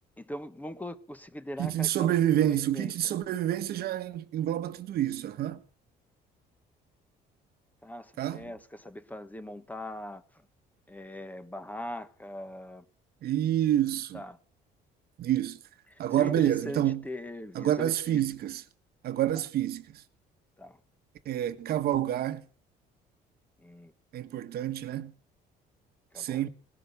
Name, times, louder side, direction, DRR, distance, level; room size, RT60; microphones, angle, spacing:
voice 1, 0.2-2.1 2.5-3.1 7.8-10.4 10.9-12.9 14.1-14.4 15.9-18.2 19.3-19.4 20.6-20.8 23.6-23.9 26.1-26.5, left 1 dB, 10° left, 1.2 m, -41 dB
voice 2, 1.6-5.6 8.2-8.4 13.2-14.2 15.2-15.6 16.0-17.0 17.5-18.6 19.0-20.0 21.2-22.4 24.1-25.1 26.2-26.5, right 12 dB, 65° right, 1.4 m, -28 dB
19.0 x 11.0 x 6.9 m
cardioid pair, 110°, 17 cm